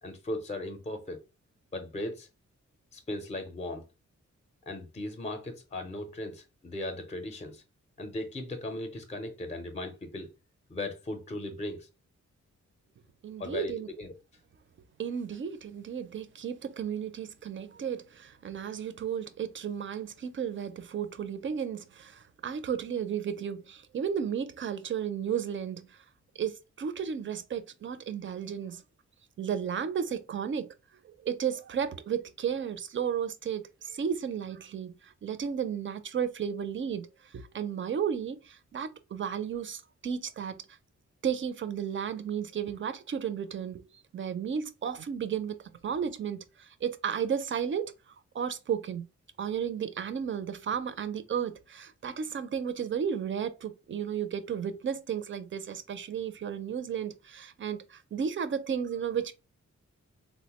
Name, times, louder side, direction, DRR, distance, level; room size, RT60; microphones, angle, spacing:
voice 1, 0.0-1.2 1.7-2.3 2.9-3.9 4.7-7.6 8.0-10.3 10.7-11.9 13.4-14.1, left 1 dB, 25° left, 0.5 m, -37 dB
voice 2, 13.2-13.9 15.0-25.9 26.4-28.8 29.4-30.7 31.0-37.1 37.3-40.5 41.2-43.8 44.1-45.6 45.8-47.9 48.3-49.1 49.4-59.3, right 8 dB, 45° right, 0.4 m, -33 dB
3.7 x 2.1 x 2.8 m
wide cardioid pair, 140°, 29 cm